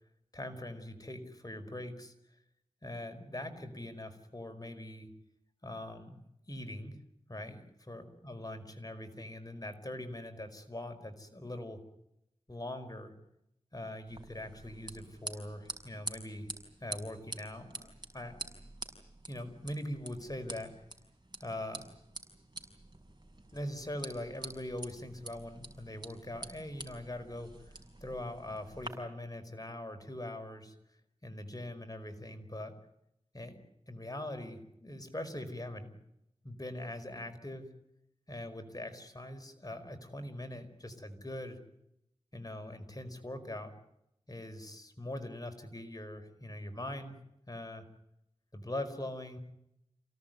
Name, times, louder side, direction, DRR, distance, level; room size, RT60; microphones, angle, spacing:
voice 1, 0.3-2.1 2.8-5.1 5.6-7.0 7.3-11.8 12.5-13.1 13.7-16.5 16.8-18.4 19.3-20.7 21.4-21.9 23.5-30.7 31.2-32.7 33.3-33.6 33.9-35.9 36.4-37.7 38.3-41.6 42.3-43.7 44.3-47.8 48.5-49.4, left 1 dB, 35° left, 7 dB, 5.1 m, -42 dB
sound 1, 14.1-28.9, right 2 dB, 40° right, 6.1 m, -47 dB
28.5 x 18.0 x 9.4 m, 0.82 s
wide cardioid pair, 45°, 11 cm